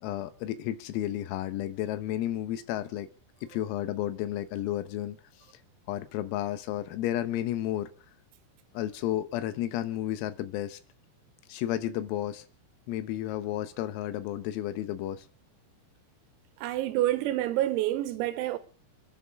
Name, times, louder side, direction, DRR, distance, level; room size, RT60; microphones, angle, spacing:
voice 1, 0.0-3.1 3.4-5.2 5.9-7.9 8.8-10.8 11.5-12.4 12.9-15.3, left 13 dB, 85° left, 3.9 m, -32 dB
voice 2, 16.6-18.6, right 14 dB, 90° right, 3.7 m, -28 dB
29.0 x 10.5 x 3.6 m
omnidirectional pair, 6.0 m